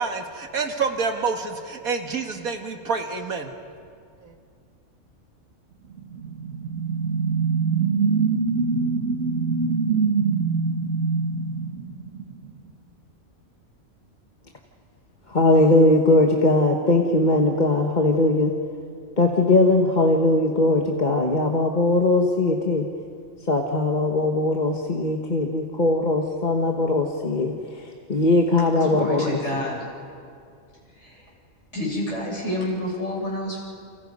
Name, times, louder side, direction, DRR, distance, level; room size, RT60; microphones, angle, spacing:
voice 1, 0.0-3.5 4.2-4.3, right 5 dB, 85° right, 4 dB, 2.3 m, -27 dB
sound 1, 6.0-12.5, right 5 dB, 55° right, 2.2 m, -24 dB
voice 2, 15.3-18.5 19.2-22.9 23.5-27.5 27.8-29.4, left 2 dB, 35° left, 1 dB, 1.6 m, -20 dB
voice 3, 28.8-29.8 31.0-31.2 31.7-33.6, left 1 dB, 55° left, -4 dB, 8.5 m, -29 dB
29.5 x 28.5 x 5.5 m, 2.3 s
omnidirectional pair, 1.5 m